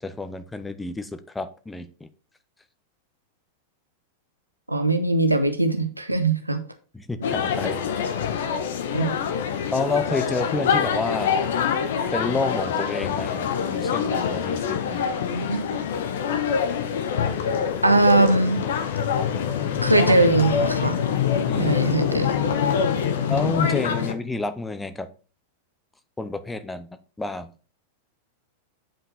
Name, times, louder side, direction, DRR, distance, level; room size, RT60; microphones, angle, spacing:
voice 1, 0.0-2.1 6.9-8.1 9.7-11.5 12.1-15.1 21.5-21.8 23.3-25.1 26.2-26.9 27.2-27.5, left 3 dB, 10° left, 10 dB, 0.8 m, -29 dB
voice 2, 4.7-6.6 8.9-9.1 15.3-15.6 17.8-18.6 19.8-21.0 21.6-22.3, right 2 dB, 85° right, 8 dB, 1.0 m, -21 dB
sound 1, 7.2-24.1, left 7 dB, 60° left, 1.1 m, -25 dB
8.8 x 5.6 x 4.1 m, 0.36 s
figure-of-eight pair, 90°, 0 cm